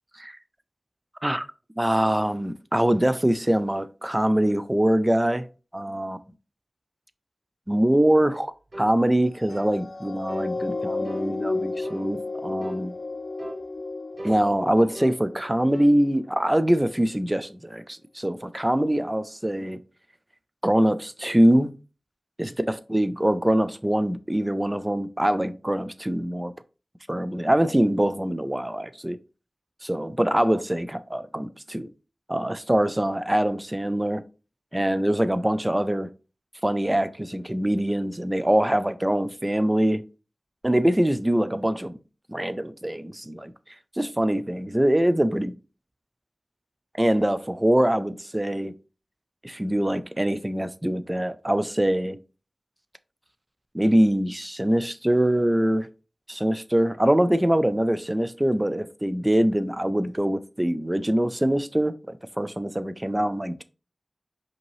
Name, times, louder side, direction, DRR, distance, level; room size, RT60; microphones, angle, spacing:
voice 1, 1.8-5.5 5.7-6.2 7.7-8.5 8.8-12.9 14.2-19.8 20.6-21.7 22.4-26.5 27.1-29.2 29.8-31.9 32.3-34.2 34.7-36.1 36.6-40.0 40.6-42.0 42.3-43.5 44.0-45.5 47.0-48.7 49.4-52.2 53.7-55.9 56.3-63.6, right 1 dB, 15° right, 0.4 m, -23 dB
sound 1, 8.7-9.0 9.5-9.8 10.3-10.5 11.0-11.3 11.8-12.1 12.6-12.9 13.4-13.6 14.2-16.0, right 1 dB, 55° right, 0.8 m, -40 dB
sound 2, 9.4-16.1 16.7-16.8, left 3 dB, 80° left, 0.5 m, -33 dB
5.2 x 2.9 x 3.1 m
wide cardioid pair, 50°, 0 cm